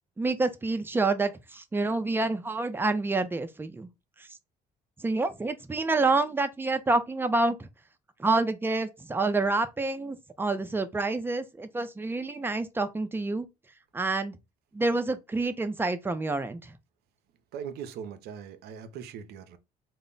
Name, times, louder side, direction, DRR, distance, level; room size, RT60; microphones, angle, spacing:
voice 1, 0.2-3.9 5.0-7.7 8.2-13.5 13.9-14.4 14.7-16.7, right 3 dB, 15° right, 0.3 m, -28 dB
voice 2, 17.5-19.6, right 7 dB, 75° right, 0.5 m, -40 dB
2.0 x 2.0 x 3.7 m
cardioid pair, 110°, 17 cm